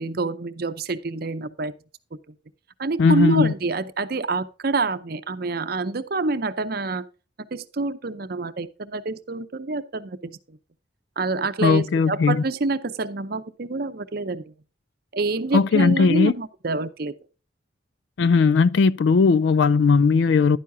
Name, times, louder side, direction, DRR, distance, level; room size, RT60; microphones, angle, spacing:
voice 1, 0.0-1.7 2.8-7.0 7.5-10.6 11.2-14.5 15.1-17.1, right 3 dB, 50° right, 0.6 m, -27 dB
voice 2, 3.0-3.5 11.6-12.4 15.5-16.3 18.2-20.6, left 5 dB, 65° left, 0.3 m, -18 dB
11.0 x 9.5 x 2.7 m
head